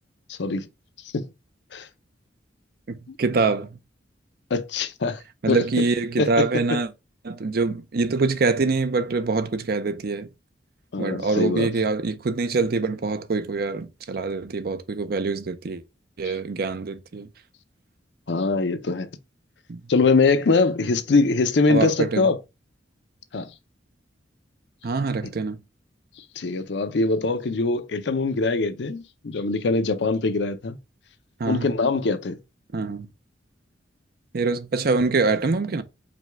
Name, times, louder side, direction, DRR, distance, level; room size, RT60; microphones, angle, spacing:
voice 1, 0.3-0.7 1.1-1.3 1.7-1.9 3.1-3.2 4.5-5.2 5.5-5.9 6.2-6.8 10.9-11.7 16.2-16.3 18.3-19.1 19.9-22.4 23.3-23.5 26.4-30.8 31.5-32.4, left 3 dB, 65° left, 0.6 m, -23 dB
voice 2, 2.9-3.8 5.4-6.9 7.2-10.3 11.0-15.8 16.2-17.3 19.7-19.8 21.7-22.3 24.8-25.6 31.4-31.7 32.7-33.1 34.3-35.8, right 3 dB, 55° right, 0.5 m, -24 dB
5.0 x 2.3 x 4.5 m
head